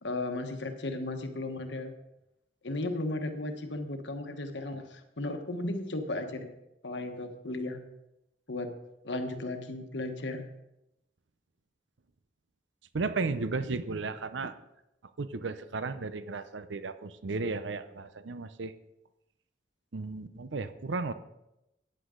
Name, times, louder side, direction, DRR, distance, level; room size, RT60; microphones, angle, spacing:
voice 1, 0.0-1.9 2.6-6.5 6.8-7.8 8.5-8.7 9.0-10.4, left 2 dB, 80° left, 6 dB, 1.3 m, -35 dB
voice 2, 12.9-14.5 15.2-18.7 19.9-21.1, right 3 dB, 90° right, 12 dB, 0.7 m, -34 dB
14.5 x 9.9 x 3.8 m, 0.89 s
head